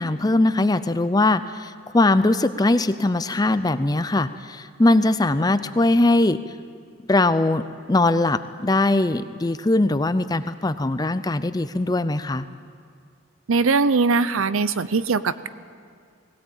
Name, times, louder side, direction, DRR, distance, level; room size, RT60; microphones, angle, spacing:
voice 1, 0.0-6.4 7.1-7.6 7.9-12.5, left 2 dB, 20° left, 12 dB, 0.5 m, -21 dB
voice 2, 13.5-15.5, right 4 dB, 70° right, 15 dB, 0.6 m, -21 dB
19.0 x 17.0 x 8.7 m, 2.2 s
head